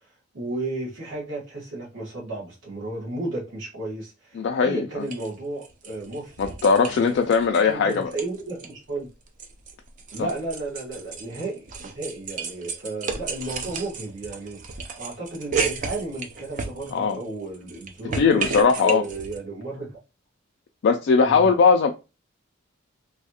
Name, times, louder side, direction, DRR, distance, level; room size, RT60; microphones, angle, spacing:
voice 1, 0.3-6.3 6.7-7.2 7.6-9.1 10.1-14.6 15.0-18.5 18.8-20.0 21.2-21.5, right 2 dB, 65° right, 1.6 m, -33 dB
voice 2, 4.3-5.1 6.4-8.1 10.2-10.3 16.9-17.2 18.2-19.1 20.8-21.9, left 5 dB, 60° left, 0.3 m, -20 dB
sound 1, 5.1-5.3 5.6-7.6 7.9-8.7 9.0-17.2 17.5-19.4, right 5 dB, 40° right, 0.4 m, -33 dB
3.2 x 2.3 x 2.7 m
head